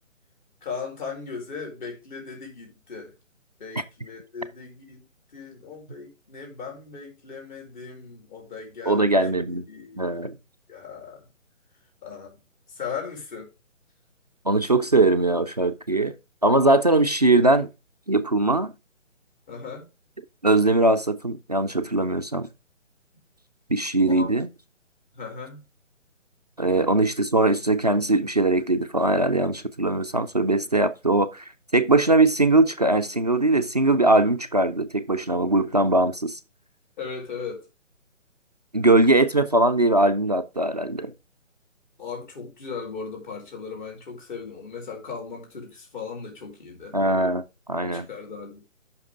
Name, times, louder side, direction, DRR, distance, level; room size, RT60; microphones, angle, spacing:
voice 1, 0.6-3.1 3.6-5.0 5.3-10.3 10.7-11.3 12.0-12.3 12.7-13.5 19.5-19.9 24.1-24.3 25.1-25.6 37.0-37.7 42.0-47.0 47.8-48.6, left 5 dB, 40° left, 4.9 m, -37 dB
voice 2, 8.9-9.6 10.0-10.4 14.5-16.1 16.4-17.7 18.1-18.7 20.4-22.5 23.7-24.5 26.6-31.4 31.7-36.4 38.7-41.1 46.9-48.1, right 2 dB, 35° right, 0.4 m, -21 dB
13.0 x 6.0 x 3.7 m
figure-of-eight pair, 155°, 39 cm